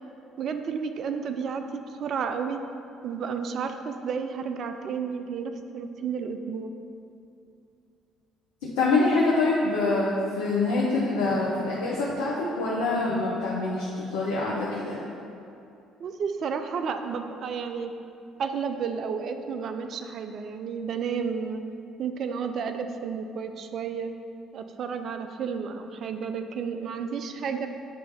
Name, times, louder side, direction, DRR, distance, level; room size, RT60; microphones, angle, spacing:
voice 1, 0.4-2.6 3.0-6.7 16.0-17.9 18.4-21.6 22.0-24.1 24.5-27.7, right 6 dB, 50° right, 7 dB, 0.3 m, -32 dB
voice 2, 8.8-15.0, left 3 dB, 70° left, -6 dB, 0.7 m, -25 dB
7.4 x 3.2 x 4.1 m, 2.6 s
figure-of-eight pair, 50°, 0 cm